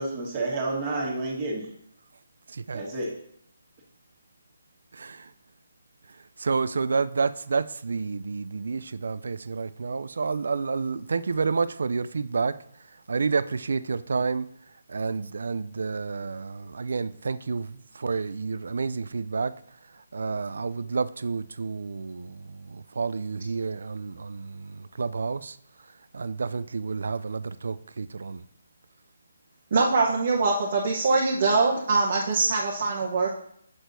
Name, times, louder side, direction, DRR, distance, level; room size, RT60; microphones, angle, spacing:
voice 1, 0.0-1.7 2.7-3.1, right 2 dB, 35° right, 1.6 m, -30 dB
voice 2, 2.5-2.9 4.9-5.3 6.4-12.6 13.1-14.5 14.9-19.5 20.1-25.6 26.1-28.4, right 4 dB, 70° right, 0.3 m, -29 dB
voice 3, 29.7-33.3, right 3 dB, 50° right, 0.9 m, -23 dB
6.1 x 6.1 x 2.6 m
hypercardioid pair, 155°, 0 cm